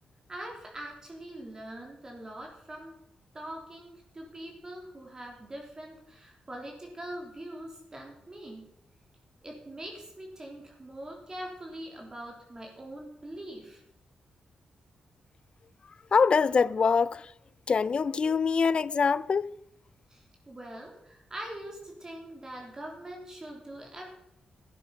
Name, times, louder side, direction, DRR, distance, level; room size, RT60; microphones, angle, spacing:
voice 1, 0.3-2.9 3.3-8.7 9.4-13.8 20.1-24.1, right 1 dB, 25° right, 3.4 m, -43 dB
voice 2, 16.1-17.2 17.7-19.5, left 5 dB, 45° left, 0.4 m, -24 dB
12.5 x 9.7 x 5.9 m
cardioid pair, 105°, 2 cm